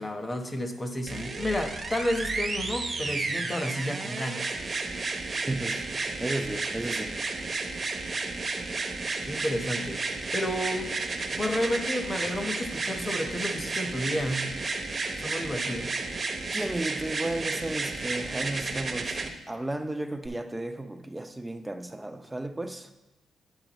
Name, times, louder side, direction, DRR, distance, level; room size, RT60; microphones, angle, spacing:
voice 1, 0.0-4.5 9.3-10.0 10.3-10.9 11.3-14.5 15.2-15.9, left 1 dB, 20° left, 5 dB, 1.0 m, -31 dB
sound 1, 1.1-19.3 20.3-20.4, right 3 dB, 35° right, 0.9 m, -32 dB
voice 2, 5.5-7.1 16.5-22.9, right 1 dB, 10° right, 8 dB, 0.6 m, -34 dB
8.8 x 7.6 x 3.0 m, 1.0 s
cardioid pair, 90°, 0 cm